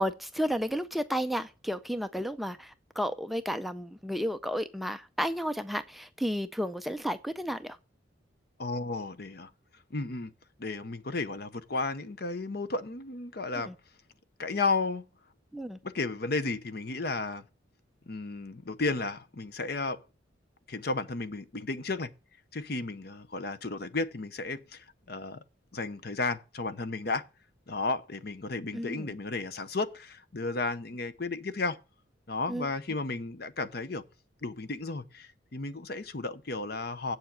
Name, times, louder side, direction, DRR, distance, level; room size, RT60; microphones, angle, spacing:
voice 1, 0.0-7.8 13.7-13.8 15.5-15.8 28.7-29.1 32.5-32.7, equal, ahead, 0.4 m, -32 dB
voice 2, 8.6-9.5 9.9-10.3 10.6-13.7 14.4-15.0 15.8-17.4 18.1-20.0 20.7-22.1 22.5-25.4 25.7-27.3 27.7-31.8 32.3-34.0 34.4-37.2, left 3 dB, 50° left, 0.8 m, -33 dB
7.9 x 7.1 x 7.5 m
head